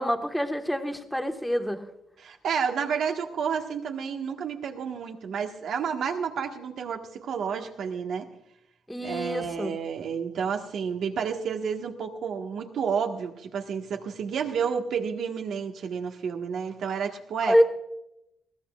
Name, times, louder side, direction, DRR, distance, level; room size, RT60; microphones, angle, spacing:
voice 1, 0.0-1.8 8.9-9.8 17.4-17.6, equal, 5° left, 5 dB, 1.5 m, -26 dB
voice 2, 2.2-8.3 9.0-17.6, right 6 dB, 70° right, 3 dB, 1.5 m, -30 dB
20.5 x 15.0 x 2.5 m, 0.85 s
cardioid pair, 90°, 0 cm